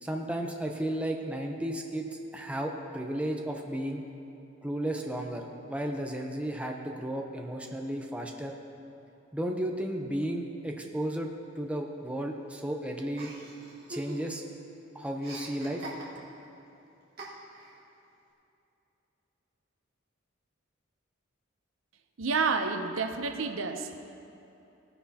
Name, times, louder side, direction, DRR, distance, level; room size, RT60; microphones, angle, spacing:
voice 1, 0.0-4.0 4.6-8.5 9.3-11.3 11.6-13.3 13.9-14.4 14.9-15.9, right 1 dB, 5° right, 1 dB, 0.7 m, -33 dB
Chuckle chortle, 13.2-14.5 14.8-16.5 17.2-17.8, right 2 dB, 50° right, 1.9 m, -43 dB
voice 2, 22.2-24.0, right 4 dB, 90° right, 7 dB, 0.7 m, -29 dB
17.5 x 9.9 x 2.9 m, 2.8 s
head